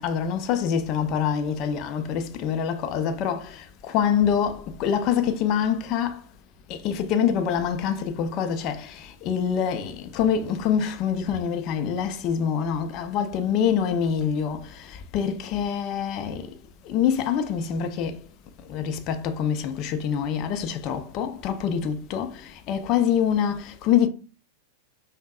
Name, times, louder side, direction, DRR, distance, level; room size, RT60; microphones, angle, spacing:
voice 1, 0.0-6.2 6.7-16.6 16.8-18.3 18.6-24.1, left 8 dB, 45° left, 0.5 m, -25 dB
5.1 x 2.1 x 2.3 m
figure-of-eight pair, 95°, 0 cm